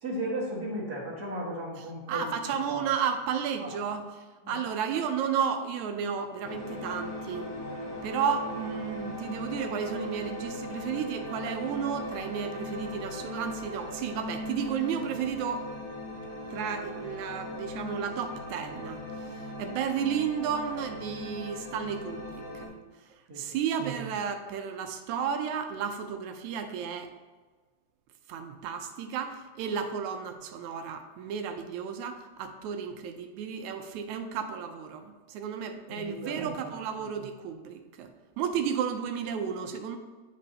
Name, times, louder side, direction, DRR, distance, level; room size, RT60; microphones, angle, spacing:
voice 1, 0.0-2.3 2.7-2.8 3.6-3.7 4.4-4.5 23.3-23.5 35.9-36.5, right 1 dB, 40° right, -6 dB, 1.7 m, -35 dB
voice 2, 2.1-4.0 4.5-7.5 8.0-15.7 16.5-22.7 23.4-27.1 28.3-38.1 38.4-40.0, right 7 dB, 80° right, 6 dB, 2.0 m, -33 dB
sound 1, 6.4-22.7, left 1 dB, 75° left, 2.4 m, -39 dB
10.5 x 5.3 x 2.8 m, 1.4 s
omnidirectional pair, 3.4 m